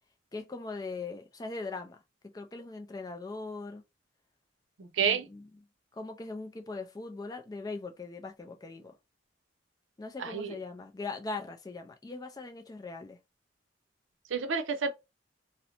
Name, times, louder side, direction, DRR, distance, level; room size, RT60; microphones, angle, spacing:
voice 1, 0.3-2.0 2.2-3.8 5.1-5.5 5.9-8.9 10.0-13.2, left 3 dB, 20° left, 0.3 m, -40 dB
voice 2, 4.8-5.3 10.2-10.6 14.3-14.9, right 6 dB, 85° right, 0.5 m, -29 dB
2.5 x 2.1 x 2.8 m
head